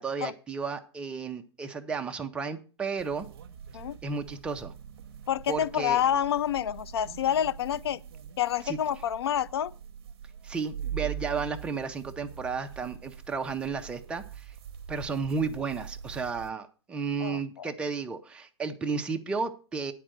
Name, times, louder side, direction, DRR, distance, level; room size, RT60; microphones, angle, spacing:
voice 1, 0.0-3.3 4.0-4.7 5.5-6.0 8.6-8.8 10.4-14.5 14.9-19.9, right 5 dB, 5° right, 0.6 m, -33 dB
sound 1, 3.0-16.5, right 9 dB, 60° right, 0.8 m, -43 dB
voice 2, 5.3-8.0 8.4-9.7 17.2-17.7, left 10 dB, 65° left, 0.5 m, -28 dB
9.9 x 4.5 x 7.6 m
hypercardioid pair, 150°, 15 cm